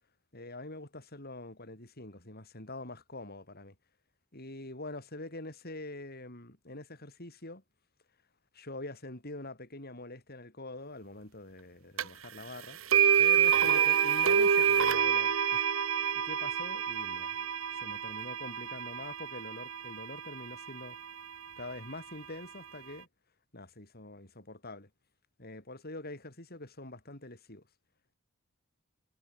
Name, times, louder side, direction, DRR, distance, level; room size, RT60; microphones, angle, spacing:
voice 1, 0.3-3.7 4.3-7.6 8.5-12.8 13.2-15.6 16.1-21.0 21.6-23.1 23.5-24.9 25.4-27.6, left 2 dB, 45° left, 6.6 m, -45 dB
sound 1, 12.0-12.1 12.9-20.9, right 8 dB, 70° right, 1.1 m, -27 dB
head